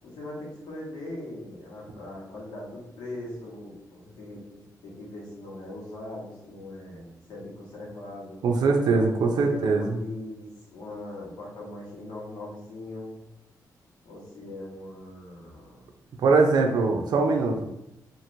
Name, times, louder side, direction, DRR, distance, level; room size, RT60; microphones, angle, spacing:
voice 1, 0.0-8.4 9.4-13.2 14.0-15.9, left 1 dB, 85° left, -5 dB, 1.2 m, -40 dB
voice 2, 8.4-10.0 16.2-17.7, right 4 dB, 80° right, 3 dB, 0.5 m, -22 dB
3.0 x 2.5 x 2.5 m, 0.90 s
cardioid pair, 100°, 7 cm